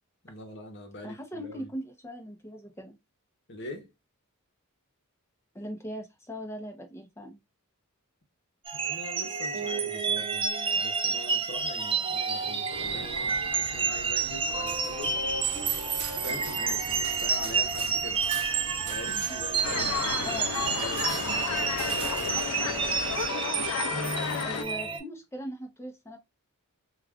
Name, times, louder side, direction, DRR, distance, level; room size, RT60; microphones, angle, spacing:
voice 1, 0.2-1.7 3.5-3.9 8.7-10.5 10.8-15.2 15.8-18.3 18.8-22.8, left 1 dB, 55° left, 0.9 m, -43 dB
voice 2, 1.0-3.0 5.5-7.4 19.1-19.3 19.9-20.5 24.4-26.2, equal, 10° left, 0.7 m, -40 dB
sound 1, 8.7-25.0, right 5 dB, 25° right, 0.4 m, -30 dB
sound 2, 12.7-23.3, right 4 dB, 80° right, 0.6 m, -42 dB
sound 3, 19.6-24.6, left 7 dB, 85° left, 0.4 m, -32 dB
2.4 x 2.4 x 3.4 m
head